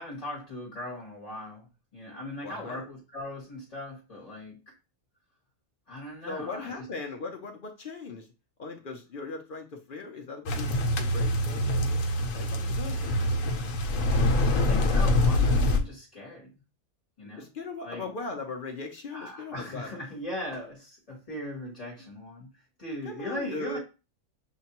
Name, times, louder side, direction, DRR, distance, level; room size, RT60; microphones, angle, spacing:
voice 1, 0.0-1.7 1.9-4.7 5.9-6.9 12.8-13.3 14.5-16.6 17.2-17.5 17.8-18.1 19.1-23.8, left 1 dB, 30° left, -2 dB, 1.0 m, -39 dB
voice 2, 2.4-2.9 6.3-8.3 8.6-13.5 14.1-15.1 17.2-19.9 23.0-23.8, left 3 dB, 55° left, 3 dB, 0.6 m, -39 dB
sound 1, 10.5-15.8, left 1 dB, 80° left, 1.0 m, -25 dB
6.4 x 2.2 x 2.8 m, 0.30 s
omnidirectional pair, 1.4 m